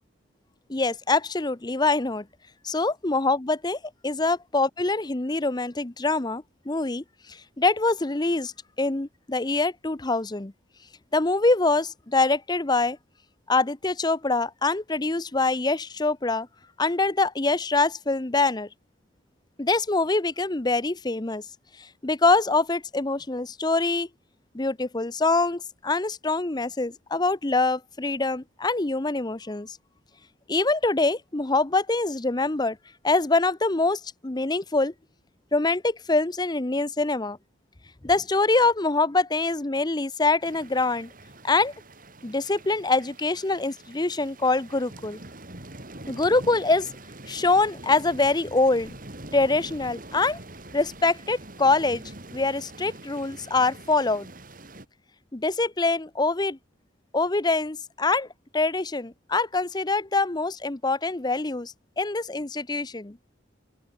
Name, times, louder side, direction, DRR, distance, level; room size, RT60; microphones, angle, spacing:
voice 1, 0.7-2.3 2.6-8.5 8.8-10.5 11.1-13.0 13.5-16.5 16.8-18.7 19.6-21.4 21.8-24.1 24.5-29.8 30.5-32.8 33.0-34.9 35.5-37.4 38.0-41.1 41.4-41.7 42.2-45.2 46.1-46.9 47.3-48.9 49.3-50.4 50.7-52.0 52.3-54.3 55.3-56.6 57.1-58.3 58.5-63.2, left 3 dB, 20° left, 0.8 m, -24 dB
sound 1, 40.4-54.9, right 2 dB, 45° right, 5.9 m, -44 dB
open air
head